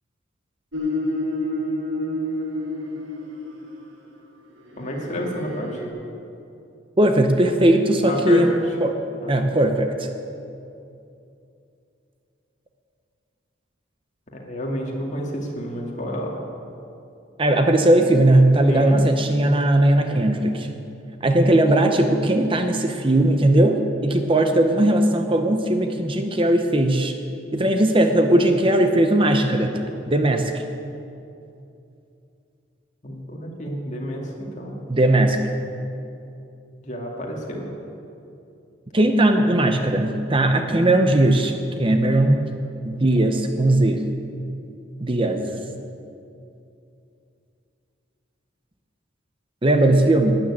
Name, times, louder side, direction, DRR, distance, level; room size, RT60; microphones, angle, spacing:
sound 1, 0.7-3.7 4.7-5.9, left 1 dB, 85° right, 2.1 m, -28 dB
voice 1, 4.8-5.7 8.0-8.4 9.2-9.3 14.3-16.4 18.7-19.0 33.0-34.8 36.8-37.7, equal, 40° left, -1 dB, 2.3 m, -29 dB
voice 2, 7.0-8.5 8.8-9.0 9.3-10.1 17.4-20.7 21.2-27.1 27.5-30.6 34.9-35.4 38.9-42.4 42.8-44.0 45.0-45.7 49.6-50.4, right 1 dB, 25° right, 6 dB, 0.8 m, -18 dB
12.5 x 9.9 x 8.6 m, 2.7 s
head